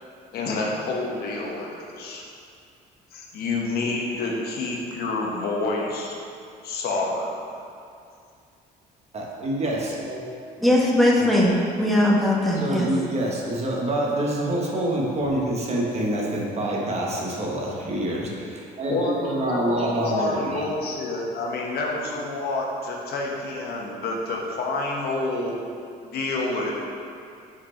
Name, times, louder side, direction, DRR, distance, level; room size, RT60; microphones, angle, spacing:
voice 1, 0.3-2.2 3.1-6.2 6.6-7.3 18.9-25.6 26.0-26.7, left 2 dB, 65° left, -1 dB, 1.0 m, -28 dB
voice 2, 9.1-10.3 11.2-11.3 12.6-20.6, right 1 dB, 40° right, -3 dB, 1.1 m, -26 dB
voice 3, 10.6-12.9, left 1 dB, ahead, -4 dB, 1.0 m, -20 dB
5.0 x 4.3 x 4.4 m, 2.4 s
cardioid pair, 110°, 17 cm